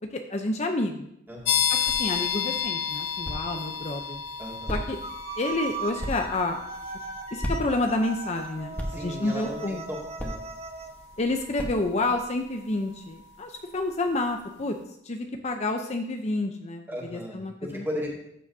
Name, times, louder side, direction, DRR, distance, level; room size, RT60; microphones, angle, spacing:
voice 1, 0.1-1.1 1.7-4.2 4.7-5.0 5.4-6.6 7.3-9.8 11.2-14.8 15.0-16.8 17.1-17.9, left 2 dB, 40° left, 4 dB, 0.6 m, -29 dB
sound 1, 1.3-12.2, equal, 10° left, 1.2 m, -39 dB
voice 2, 1.3-1.6 4.4-4.8 8.9-9.8 10.2-10.3 16.9-18.1, equal, 15° right, -3 dB, 2.2 m, -35 dB
sound 2, 1.4-14.0, left 8 dB, 85° left, 0.9 m, -33 dB
sound 3, 5.0-10.9, right 4 dB, 35° right, 0.9 m, -38 dB
13.5 x 7.6 x 2.7 m, 0.74 s
head